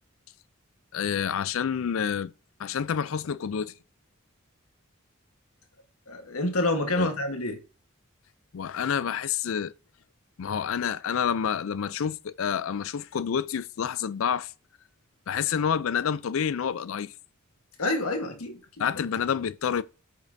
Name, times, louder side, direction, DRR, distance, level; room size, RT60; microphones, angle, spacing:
voice 1, 0.9-2.3 2.6-3.7 7.0-7.1 8.5-9.7 10.4-14.5 15.3-17.1 18.8-19.8, left 7 dB, 70° left, 0.4 m, -28 dB
voice 2, 6.1-7.6 17.8-18.9, left 2 dB, 85° left, 1.3 m, -28 dB
8.3 x 5.8 x 2.6 m
head